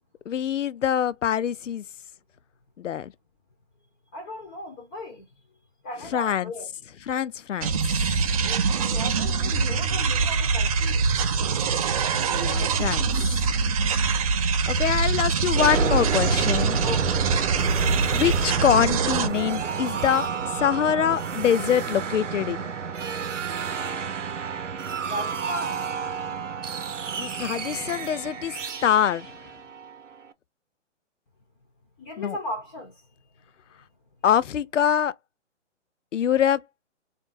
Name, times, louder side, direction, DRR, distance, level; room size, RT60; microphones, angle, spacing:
voice 1, 0.3-1.8 2.8-3.1 6.1-6.5 7.1-7.8 12.3-13.3 14.7-16.8 18.1-20.3 20.6-22.7 27.1-28.5 28.8-29.3 32.2-32.4 34.2-35.1 36.1-36.6, left 9 dB, 85° left, 0.5 m, -24 dB
voice 2, 4.1-5.2 5.8-6.7 8.4-11.2 16.8-17.3 25.0-25.8 32.0-32.9, left 1 dB, 15° left, 0.6 m, -36 dB
sound 1, 7.6-19.3, right 5 dB, 30° right, 0.5 m, -24 dB
sound 2, 15.5-30.2, right 6 dB, 85° right, 0.9 m, -30 dB
3.6 x 2.6 x 3.9 m
hypercardioid pair, 140°, 36 cm